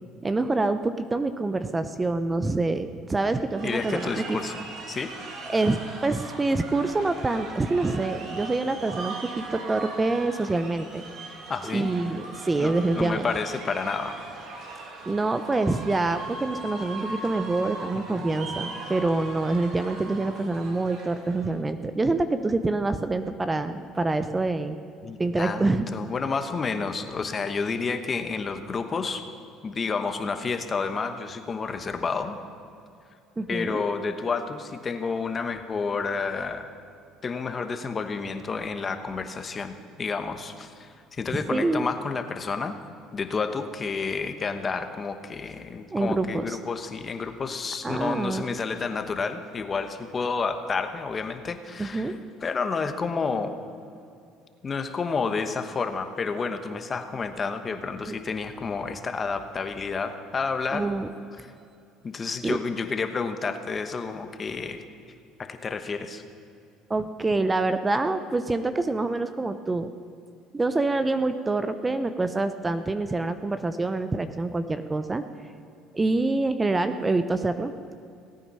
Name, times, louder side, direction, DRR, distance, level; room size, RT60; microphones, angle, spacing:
voice 1, 0.2-4.4 5.5-11.0 11.7-13.3 15.1-24.8 25.2-25.9 33.4-33.8 41.3-41.9 45.9-46.6 47.8-48.4 51.8-52.1 58.1-58.2 60.7-61.1 62.4-62.6 66.9-69.9 70.5-75.2 75.9-77.9, right 3 dB, 20° right, 10 dB, 0.6 m, -26 dB
sound 1, 3.5-21.5, right 3 dB, 65° right, 2.4 m, -39 dB
voice 2, 3.6-5.1 11.5-11.9 12.6-14.2 14.7-14.8 17.9-18.3 25.0-29.2 29.6-32.4 33.5-36.7 37.2-42.8 43.1-53.6 54.6-60.9 62.0-64.8 65.4-66.2, left 4 dB, 30° left, 8 dB, 1.1 m, -30 dB
18.0 x 9.3 x 5.5 m, 2.5 s
supercardioid pair, 95°, 0 cm